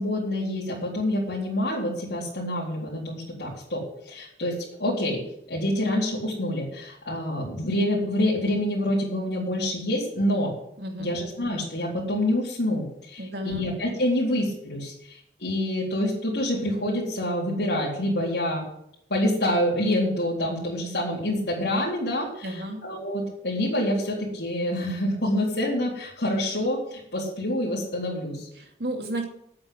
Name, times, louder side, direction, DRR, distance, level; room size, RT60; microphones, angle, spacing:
voice 1, 0.0-5.2 5.5-10.5 11.0-18.7 19.1-28.5, left 1 dB, 85° left, -8 dB, 4.0 m, -27 dB
voice 2, 10.8-11.2 13.2-13.7 22.4-22.8 28.6-29.2, right 1 dB, 70° right, 3 dB, 2.7 m, -32 dB
8.9 x 8.7 x 9.5 m, 0.74 s
head